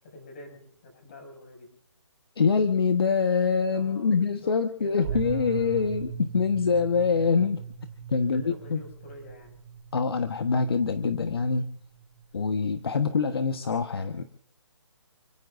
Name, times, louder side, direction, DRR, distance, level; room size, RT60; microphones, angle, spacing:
voice 1, 0.0-1.7 3.7-4.5 4.8-6.0 6.9-7.3 8.1-9.6, left 1 dB, 25° left, 2 dB, 6.7 m, -47 dB
voice 2, 2.4-7.6 8.1-8.8 9.9-11.7 12.3-14.2, left 5 dB, 55° left, 7 dB, 1.4 m, -25 dB
sound 1, 5.0-13.1, right 7 dB, 25° right, 6.5 m, -39 dB
30.0 x 17.0 x 2.6 m, 0.70 s
hypercardioid pair, 170°, 15 cm